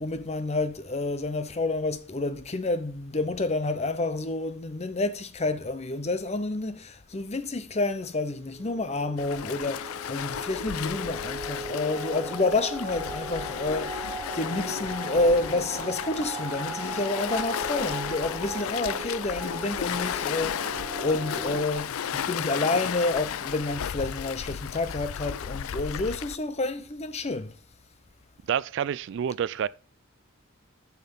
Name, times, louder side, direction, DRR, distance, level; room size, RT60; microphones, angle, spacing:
voice 1, 0.0-27.5, left 2 dB, 30° left, 0.7 m, -29 dB
sound 1, 8.3-21.7, right 2 dB, 25° right, 2.3 m, -38 dB
Waves surf, 9.2-26.4, left 9 dB, 80° left, 0.4 m, -34 dB
voice 2, 28.5-29.7, right 8 dB, 60° right, 0.3 m, -28 dB
7.1 x 5.9 x 7.2 m
head